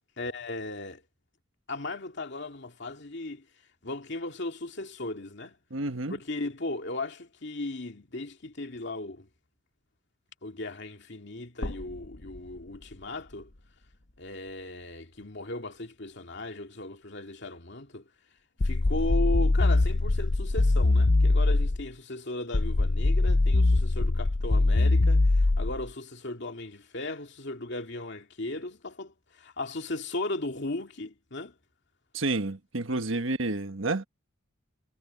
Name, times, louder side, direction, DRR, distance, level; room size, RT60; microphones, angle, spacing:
voice 1, 0.2-1.0 1.7-3.5 3.8-5.6 6.1-9.3 10.4-13.5 14.2-18.1 18.6-31.5 32.9-33.0, left 2 dB, 60° left, 2.4 m, -36 dB
voice 2, 5.7-6.2 32.1-34.0, right 2 dB, 75° right, 1.4 m, -30 dB
sound 1, 11.6-15.8 16.1-16.2 17.6-17.7, left 1 dB, 75° left, 1.5 m, -44 dB
sound 2, 18.6-21.9 22.5-25.9, left 2 dB, 40° left, 0.6 m, -23 dB
head